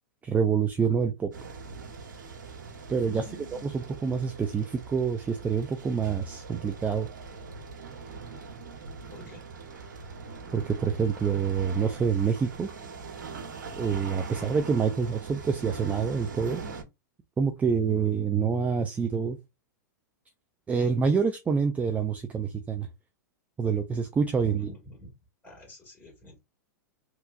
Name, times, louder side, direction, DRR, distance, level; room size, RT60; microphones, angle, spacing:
voice 1, 0.2-1.3 2.9-3.2 3.6-7.1 10.5-12.7 13.8-16.6 17.4-19.4 20.7-22.9 23.6-24.7, right 6 dB, 15° right, 0.5 m, -27 dB
sound 1, 1.3-16.8, right 4 dB, 80° right, 1.4 m, -42 dB
voice 2, 3.0-3.7 9.1-9.5 24.4-25.1 25.4-26.4, left 1 dB, 15° left, 2.2 m, -46 dB
3.6 x 3.0 x 2.5 m
hypercardioid pair, 115°, 10 cm